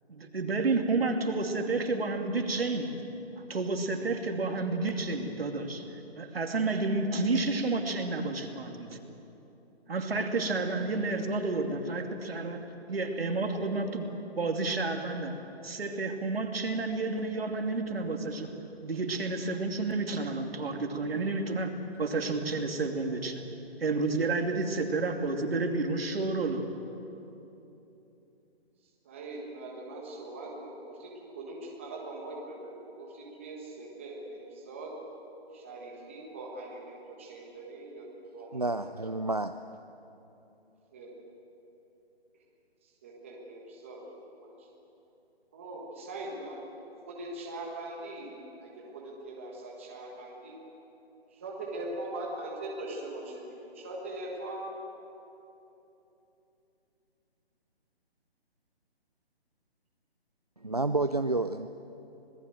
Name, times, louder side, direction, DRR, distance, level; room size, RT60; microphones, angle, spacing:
voice 1, 0.1-2.9 3.5-5.9 6.1-9.0 9.9-14.1 14.3-18.5 18.8-21.7 22.0-23.4 23.8-26.7, right 3 dB, 65° right, 4 dB, 2.7 m, -30 dB
voice 2, 29.0-34.9 35.5-38.1 38.3-38.8 40.9-41.1 43.0-44.7 45.5-46.6 47.0-50.6 51.3-54.7, right 2 dB, 10° right, -2 dB, 1.5 m, -41 dB
voice 3, 38.5-39.5 60.6-61.7, right 2 dB, 40° right, 9 dB, 0.4 m, -29 dB
26.5 x 18.5 x 7.7 m, 3.0 s
hypercardioid pair, 180°, 32 cm